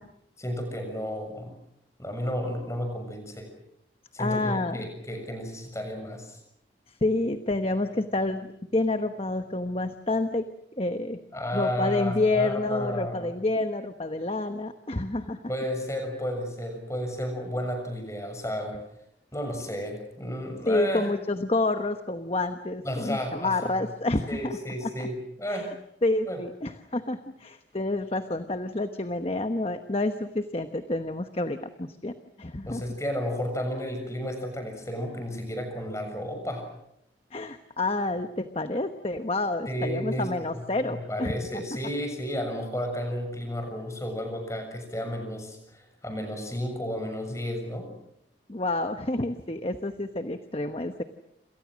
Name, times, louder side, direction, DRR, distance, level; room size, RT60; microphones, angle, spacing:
voice 1, 0.4-1.6 2.0-3.5 4.1-6.4 11.3-13.3 15.5-18.8 19.3-21.1 22.8-23.8 24.3-25.7 26.3-26.4 32.7-36.7 39.6-47.9, equal, 15° left, 5 dB, 6.7 m, -32 dB
voice 2, 4.2-4.9 6.9-10.5 10.8-11.2 11.5-15.4 20.7-25.1 25.5-25.7 26.0-32.8 37.3-41.6 48.5-51.0, left 2 dB, 30° left, 8 dB, 1.1 m, -29 dB
28.5 x 27.5 x 6.4 m, 0.77 s
head